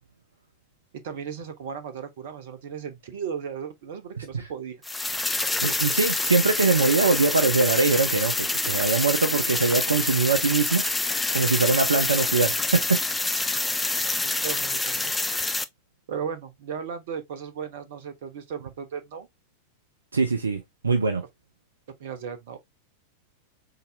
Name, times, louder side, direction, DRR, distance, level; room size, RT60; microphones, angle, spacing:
voice 1, 0.9-4.8 14.2-15.1 16.1-19.3 22.0-22.6, right 7 dB, 55° right, 1.0 m, -36 dB
sound 1, 4.8-15.6, left 2 dB, 10° left, 0.4 m, -27 dB
voice 2, 5.6-13.0 13.5-13.7 20.1-21.2, right 4 dB, 75° right, 0.5 m, -23 dB
4.0 x 3.9 x 2.4 m
figure-of-eight pair, 90°, 0 cm